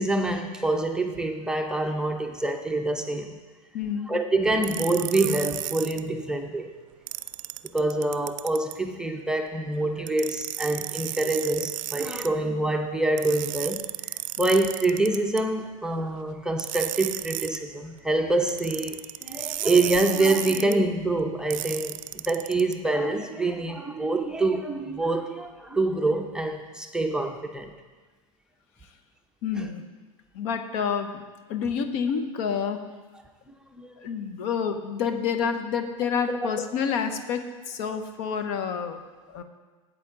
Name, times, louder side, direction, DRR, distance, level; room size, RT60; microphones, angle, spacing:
voice 1, 0.0-3.4 4.1-6.7 7.7-27.7 29.6-29.7 33.8-33.9 36.3-36.4, right 2 dB, 5° right, 3 dB, 0.7 m, -26 dB
voice 2, 3.7-4.1 14.4-14.6 29.4-29.9 30.3-31.2 31.5-32.9 34.0-39.0 39.3-39.4, left 6 dB, 60° left, 7 dB, 1.0 m, -28 dB
sound 1, 4.6-6.0 7.1-8.8 10.1-12.3 13.2-15.4 16.6-17.6 18.5-20.7 21.5-22.7, right 16 dB, 65° right, 0.4 m, -33 dB
12.0 x 8.5 x 3.8 m, 1.3 s
hypercardioid pair, 110°, 18 cm